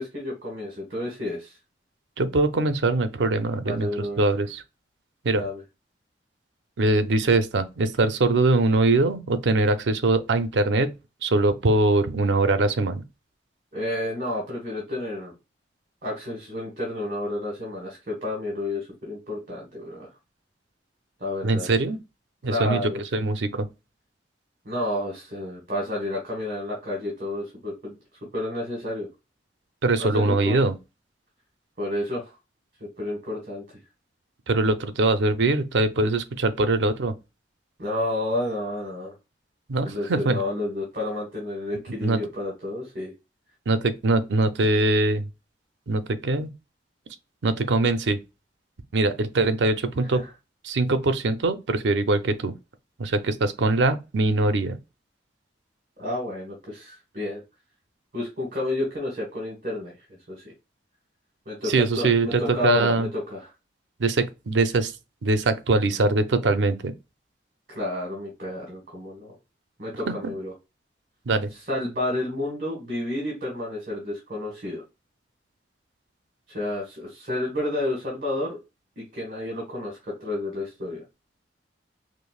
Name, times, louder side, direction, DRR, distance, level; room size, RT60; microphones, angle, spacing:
voice 1, 0.0-1.5 3.7-4.2 5.3-5.6 13.7-15.3 16.0-20.1 21.2-21.7 22.5-23.0 24.6-28.0 28.3-29.1 30.0-30.6 31.8-32.3 33.0-33.6 37.8-39.1 39.8-43.1 50.0-50.2 56.0-57.4 58.1-59.9 60.3-60.5 61.5-63.5 67.7-69.3 69.8-70.5 71.7-74.8 76.5-78.6 79.0-81.0, left 1 dB, 50° right, 1.3 m, -30 dB
voice 2, 2.2-3.9 4.2-4.6 5.2-5.4 6.8-10.9 11.2-13.0 21.4-22.0 22.4-23.7 29.8-30.7 34.5-37.1 39.7-40.4 42.0-42.2 43.7-45.2 45.9-46.5 47.4-48.2 48.9-50.2 50.6-52.5 53.0-54.8 61.6-63.1 64.0-64.9 65.2-66.9 71.3-71.5, right 2 dB, 75° right, 0.5 m, -22 dB
5.1 x 2.0 x 2.3 m
head